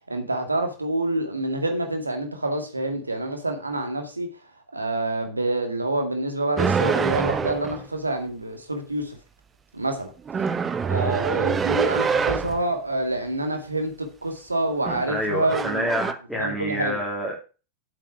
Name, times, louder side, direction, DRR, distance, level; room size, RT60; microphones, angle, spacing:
voice 1, 0.1-4.3 4.7-9.2 9.7-10.1 10.8-15.9 16.4-17.0, right 2 dB, 80° right, 5 dB, 2.2 m, -27 dB
sound 1, 6.6-7.8 10.3-12.6 14.7-15.1 15.5-16.1, right 6 dB, 20° right, 0.8 m, -25 dB
voice 2, 15.1-17.4, equal, ahead, -4 dB, 3.0 m, -27 dB
8.3 x 7.8 x 5.9 m, 0.34 s
figure-of-eight pair, 90°, 0 cm